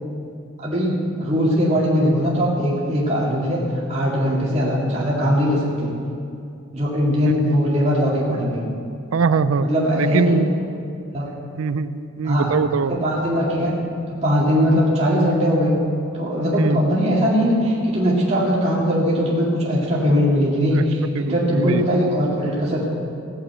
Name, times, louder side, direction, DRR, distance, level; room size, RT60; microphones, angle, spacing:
voice 1, 0.6-3.6 3.9-5.9 6.7-8.6 9.6-10.4 11.1-11.3 12.2-12.5 12.9-13.7 14.2-15.8 16.1-22.8, equal, 30° right, -6 dB, 2.2 m, -20 dB
voice 2, 9.1-9.7 10.0-10.5 11.6-13.0 16.6-16.8 20.7-20.8 21.1-21.8, right 5 dB, 90° right, 13 dB, 0.5 m, -22 dB
16.0 x 7.0 x 8.0 m, 2.5 s
head